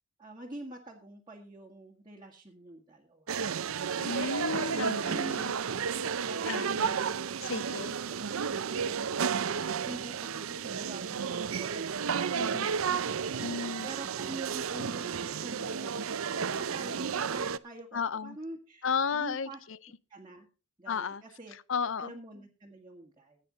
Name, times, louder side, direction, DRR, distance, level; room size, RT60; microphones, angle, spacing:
voice 1, 0.2-3.3 4.9-5.4 6.3-7.1 7.4-7.5 7.8-8.2 8.4-9.2 9.8-16.1 16.4-19.6 20.1-20.5 20.8-21.5 22.0-23.4, right 2 dB, 20° right, 1.8 m, -46 dB
sound 1, 3.3-17.6, right 6 dB, 75° right, 0.6 m, -32 dB
voice 2, 4.0-5.5 6.5-7.0 7.4-8.0 12.3-12.7 13.4-13.9 17.9-18.4 18.8-19.8 20.9-21.2 21.5-22.1, left 5 dB, 65° left, 0.6 m, -34 dB
16.0 x 9.1 x 4.0 m
head